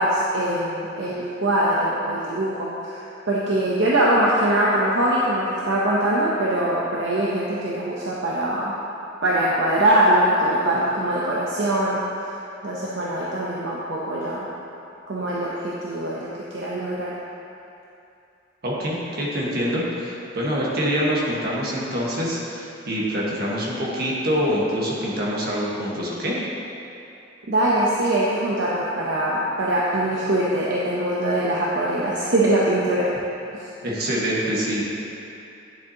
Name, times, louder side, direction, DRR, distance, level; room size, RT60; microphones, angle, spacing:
voice 1, 0.0-8.7 9.2-12.3 12.6-14.5 15.1-17.1 27.5-33.1, right 1 dB, 70° right, -6 dB, 0.8 m, -22 dB
voice 2, 18.6-26.4 33.8-34.8, equal, 55° right, -5 dB, 1.5 m, -25 dB
10.0 x 7.0 x 2.9 m, 2.7 s
head